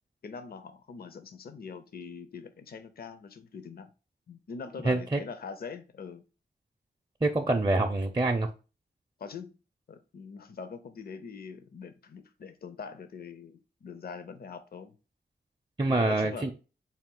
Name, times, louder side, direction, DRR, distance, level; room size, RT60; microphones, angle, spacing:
voice 1, 0.2-3.9 4.3-6.2 9.2-9.6 9.9-14.9 15.9-16.5, left 5 dB, 55° left, 0.5 m, -43 dB
voice 2, 4.8-5.2 7.2-8.5 15.8-16.5, right 2 dB, 20° right, 0.5 m, -26 dB
4.2 x 2.3 x 3.7 m
cardioid pair, 55°, 19 cm